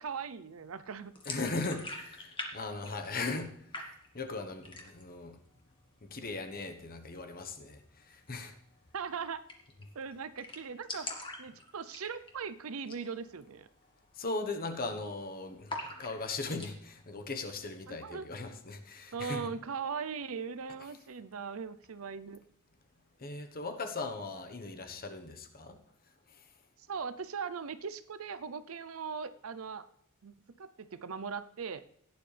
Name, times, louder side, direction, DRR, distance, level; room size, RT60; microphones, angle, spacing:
voice 1, 0.0-1.1 8.9-9.4 9.9-13.7 17.9-18.3 19.1-22.4 26.8-29.9 30.2-31.8, right 6 dB, 70° right, 14 dB, 0.6 m, -39 dB
sound 1, 1.2-2.5 2.8-3.5 3.7-4.3 4.6-5.2 5.5-5.6 5.9-6.6 8.3-8.4 8.7-8.8 9.0-9.1 9.5-9.8 10.1-10.2 10.4-12.4 12.8-13.1 13.4-13.5 14.1-14.3 14.6-15.2 15.7-16.7, left 2 dB, 25° left, 1.8 m, -42 dB
voice 2, 1.3-3.5 4.1-5.4 6.1-7.8 8.1-8.5 14.2-19.5 23.2-25.8, left 3 dB, 45° left, 6 dB, 1.2 m, -38 dB
16.5 x 9.8 x 3.4 m, 0.70 s
head